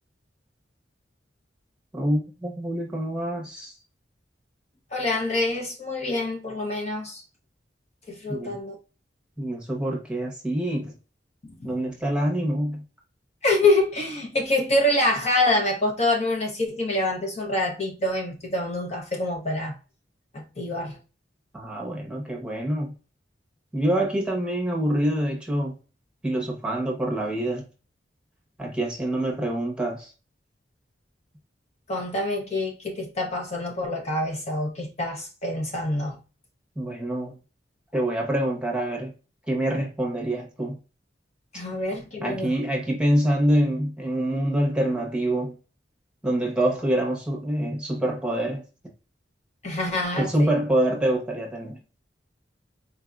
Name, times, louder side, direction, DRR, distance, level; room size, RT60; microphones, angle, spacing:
voice 1, 1.9-3.7 8.3-8.6 9.4-10.9 11.6-12.8 21.5-22.9 23.7-25.7 26.2-27.6 28.6-30.1 36.8-37.3 37.9-39.1 39.5-40.8 42.2-45.5 46.2-48.6 50.2-51.8, right 1 dB, 5° right, 1.1 m, -26 dB
voice 2, 4.9-7.2 8.1-8.7 11.4-11.7 13.4-19.7 20.3-21.0 31.9-36.2 41.5-42.6 49.6-50.6, left 2 dB, 40° left, 0.8 m, -26 dB
4.4 x 2.7 x 2.3 m
head